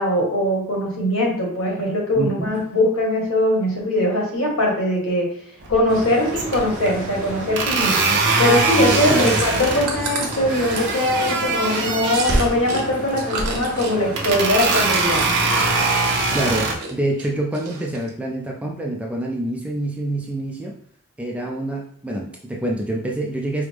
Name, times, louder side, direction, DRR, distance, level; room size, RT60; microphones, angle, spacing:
voice 1, 0.0-5.3 5.7-8.0 8.4-15.3, left 1 dB, 70° left, -1 dB, 1.3 m, -21 dB
voice 2, 2.2-2.5 9.1-9.4 16.0-20.7 21.2-23.7, right 1 dB, 5° right, -1 dB, 0.4 m, -26 dB
sound 1, 5.6-6.0 6.3-6.9 7.6-9.9 10.5-12.5 13.2-13.6 14.2-16.7, right 3 dB, 50° right, 0.7 m, -22 dB
sound 2, 5.9-16.8, right 1 dB, 35° right, 1.0 m, -32 dB
Chewing mastication, 8.8-12.8 13.1-15.8 16.2-16.9 17.2-18.1, right 4 dB, 90° right, 0.8 m, -30 dB
4.8 x 2.0 x 3.4 m, 0.63 s
head